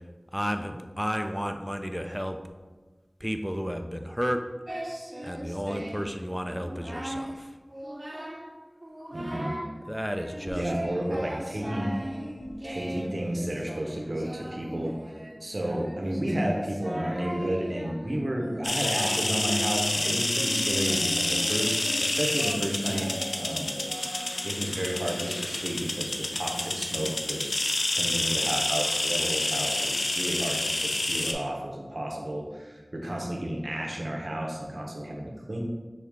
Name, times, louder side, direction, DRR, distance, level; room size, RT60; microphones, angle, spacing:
voice 1, 0.3-2.4 3.2-4.4 5.2-7.5 9.9-10.7 11.1-11.4, equal, ahead, 6 dB, 0.3 m, -32 dB
Singing, 4.7-6.2 6.5-7.3 7.7-8.5 8.8-9.7 10.1-24.6, right 1 dB, 40° right, 0.7 m, -38 dB
voice 2, 9.1-9.6 10.5-11.9 12.6-14.9 15.4-23.1 23.4-23.8 24.4-27.5 27.9-35.6, right 1 dB, 70° right, 0 dB, 0.8 m, -32 dB
sound 1, 18.6-31.3, left 2 dB, 85° left, 0.4 m, -28 dB
6.2 x 2.3 x 3.5 m, 1.3 s
wide cardioid pair, 45°, 0 cm